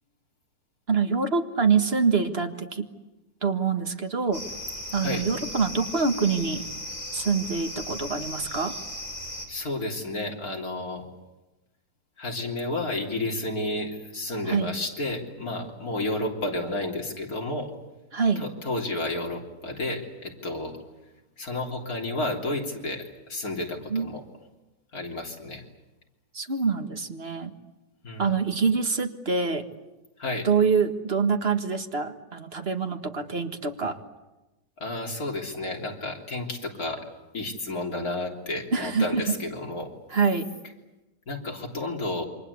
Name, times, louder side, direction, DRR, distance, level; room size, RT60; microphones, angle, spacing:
voice 1, 0.9-2.9 3.4-4.4 4.9-6.6 7.1-8.8 14.5-14.8 18.1-18.4 23.9-24.1 26.3-27.5 28.2-29.7 30.4-34.0 38.7-39.2 40.1-40.5, right 5 dB, 40° right, 6 dB, 1.8 m, -25 dB
sound 1, 4.3-9.5, left 1 dB, 25° left, 5.0 m, -37 dB
voice 2, 9.5-11.0 12.2-17.7 18.4-20.8 21.4-24.2 24.9-25.6 28.0-28.3 30.2-30.5 34.8-37.1 37.3-39.9 41.3-42.2, left 2 dB, 60° left, 1 dB, 3.8 m, -31 dB
28.5 x 25.0 x 8.3 m, 1.0 s
omnidirectional pair, 1.7 m